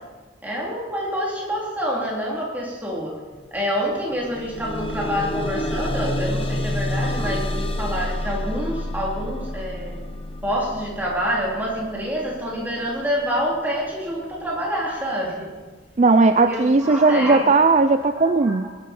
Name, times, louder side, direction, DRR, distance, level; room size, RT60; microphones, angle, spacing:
voice 1, 0.4-3.1 3.5-10.0 10.4-15.5 16.4-17.5 18.2-18.7, equal, 10° right, -4 dB, 3.2 m, -27 dB
sound 1, 3.4-3.5 3.9-14.9 15.7-15.8 16.3-16.4, left 1 dB, 30° left, 1.1 m, -29 dB
voice 2, 16.0-18.7, right 3 dB, 40° right, 9 dB, 0.4 m, -17 dB
19.5 x 11.0 x 4.4 m, 1.3 s
head